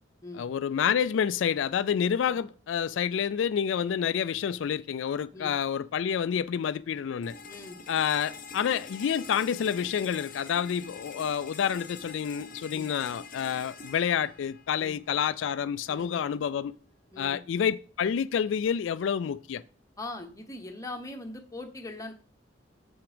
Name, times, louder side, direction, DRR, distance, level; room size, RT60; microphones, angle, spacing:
voice 1, 0.4-7.3 7.9-16.7 17.2-19.6, left 8 dB, 85° left, 0.3 m, -28 dB
sound 1, 7.2-15.2, left 5 dB, 45° left, 0.9 m, -45 dB
voice 2, 7.4-7.8 10.9-11.0 12.7-12.9 14.8-15.0 15.9-16.2 17.1-17.4 20.0-22.1, left 2 dB, 15° left, 1.1 m, -41 dB
7.2 x 5.9 x 5.0 m
head